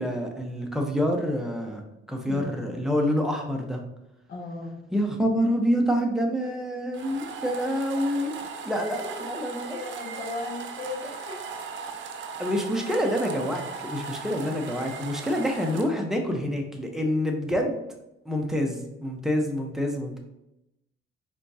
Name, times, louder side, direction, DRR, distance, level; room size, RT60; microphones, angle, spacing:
voice 1, 0.0-3.8 4.9-8.4 8.6-9.8 12.4-17.8 18.2-20.2, equal, ahead, 2 dB, 0.9 m, -27 dB
voice 2, 2.2-2.7 4.3-4.8 9.2-11.4, left 2 dB, 55° left, -3 dB, 1.0 m, -37 dB
sound 1, 6.9-15.9, right 5 dB, 70° right, 0.6 m, -38 dB
4.4 x 3.5 x 2.8 m, 0.89 s
cardioid pair, 90°, 20 cm